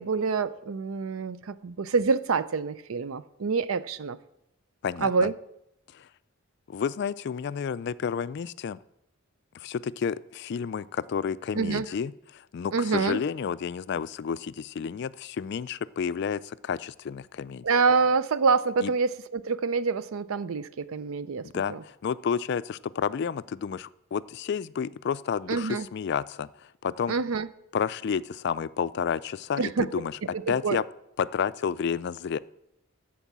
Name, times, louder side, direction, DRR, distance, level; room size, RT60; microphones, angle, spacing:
voice 1, 0.0-4.2 5.0-5.3 11.5-11.9 12.7-13.2 17.6-21.8 25.5-25.9 27.1-27.5 29.6-29.9 30.3-30.8, right 4 dB, 80° right, 0.5 m, -26 dB
voice 2, 4.8-5.3 5.9-6.1 6.7-8.8 9.5-17.6 18.8-18.9 21.4-27.1 27.7-30.2 30.5-30.8 31.2-32.4, left 6 dB, 55° left, 0.3 m, -31 dB
13.5 x 4.7 x 7.3 m
head